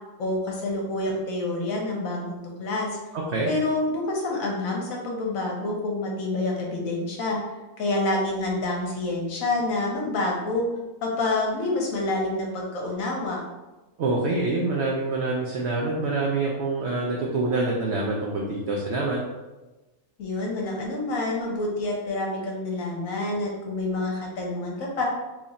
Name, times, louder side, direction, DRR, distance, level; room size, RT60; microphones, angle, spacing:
voice 1, 0.2-3.0 3.4-7.4 7.8-10.7 11.0-13.4 20.2-25.0, left 2 dB, 65° left, -1 dB, 1.0 m, -27 dB
voice 2, 3.1-3.5 14.0-19.2, right 3 dB, 80° right, -2 dB, 0.6 m, -26 dB
3.0 x 2.4 x 4.0 m, 1.1 s
omnidirectional pair, 1.7 m